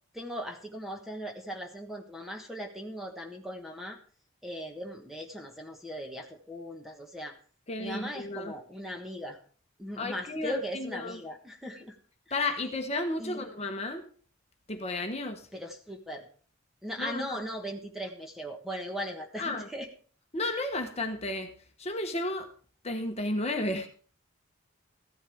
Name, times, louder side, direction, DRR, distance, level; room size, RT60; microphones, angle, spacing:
voice 1, 0.1-4.0 4.4-7.3 7.8-9.4 9.8-12.0 12.3-12.4 13.2-13.4 15.5-16.3 16.8-19.9, equal, ahead, 2 dB, 1.3 m, -39 dB
voice 2, 7.7-8.5 10.0-11.2 12.3-14.0 14.7-15.5 17.0-17.4 19.4-19.7 20.3-21.5 21.8-22.5 22.8-23.9, left 2 dB, 30° left, 4 dB, 1.2 m, -33 dB
15.0 x 11.0 x 3.6 m, 0.43 s
head